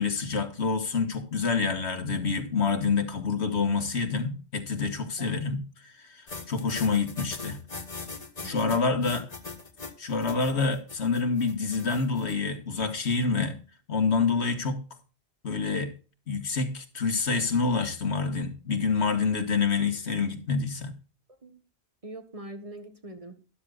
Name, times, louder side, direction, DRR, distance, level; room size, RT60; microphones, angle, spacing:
voice 1, 0.0-7.6 8.4-9.2 10.0-13.6 13.9-14.8 15.4-15.9 16.3-20.9, left 4 dB, 90° left, 1.8 m, -27 dB
sound 1, 6.3-12.3, left 3 dB, 40° left, 1.4 m, -41 dB
voice 2, 8.4-9.2 10.6-10.8 21.3-21.6 22.0-23.4, right 1 dB, 35° right, 1.6 m, -43 dB
13.0 x 12.0 x 2.4 m
omnidirectional pair, 1.1 m